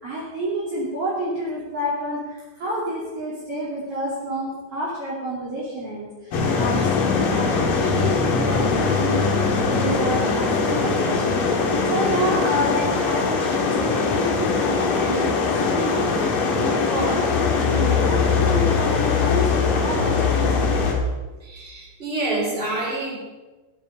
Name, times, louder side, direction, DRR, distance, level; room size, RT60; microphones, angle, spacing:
voice 1, 0.0-17.2 17.5-20.8 21.2-21.3, right 1 dB, 45° right, -8 dB, 3.8 m, -29 dB
sound 1, 6.3-20.9, left 5 dB, 75° left, 3.3 m, -21 dB
voice 2, 21.4-23.2, right 2 dB, 15° right, -5 dB, 4.8 m, -27 dB
17.5 x 8.9 x 5.3 m, 1.2 s
omnidirectional pair, 3.8 m